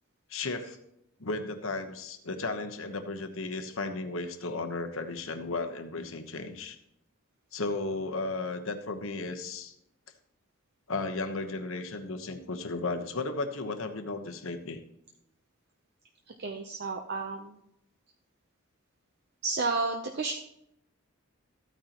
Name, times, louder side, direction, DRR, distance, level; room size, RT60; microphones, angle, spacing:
voice 1, 0.3-0.8 1.2-6.8 7.5-9.7 10.9-14.8, left 3 dB, 65° left, 7 dB, 1.1 m, -34 dB
voice 2, 16.3-17.6 19.4-20.3, right 3 dB, 50° right, 3 dB, 0.7 m, -32 dB
14.0 x 9.1 x 3.0 m, 0.78 s
head